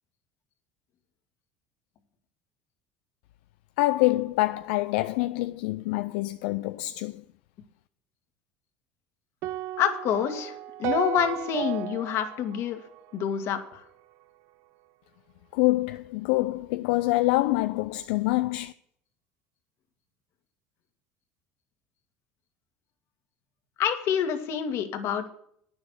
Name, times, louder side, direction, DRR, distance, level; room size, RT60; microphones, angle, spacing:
voice 1, 3.8-7.2 15.5-18.7, left 19 dB, 80° left, 0.4 m, -26 dB
Piano Sample, 9.4-13.7, right 13 dB, 65° right, 0.5 m, -34 dB
voice 2, 9.8-12.8 13.1-13.9 23.8-25.3, left 8 dB, 60° left, 1.8 m, -27 dB
9.5 x 7.1 x 8.1 m
supercardioid pair, 95°, 5 cm